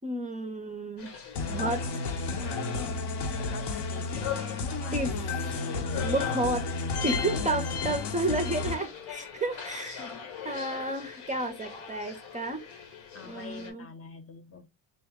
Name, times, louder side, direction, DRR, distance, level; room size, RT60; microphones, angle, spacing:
voice 1, 0.0-1.1 1.5-2.0 4.9-5.1 6.0-6.7 7.0-10.1 10.4-12.6 13.3-13.9, right 2 dB, 15° right, 0.5 m, -31 dB
sound 1, 1.0-13.7, left 7 dB, 80° left, 1.4 m, -42 dB
sound 2, 1.4-8.7, left 3 dB, 60° left, 0.9 m, -32 dB
voice 2, 3.4-6.0 7.1-7.6 9.7-10.6 13.1-14.7, left 5 dB, 30° left, 0.6 m, -46 dB
3.9 x 2.1 x 3.4 m
cardioid pair, 95°, 46 cm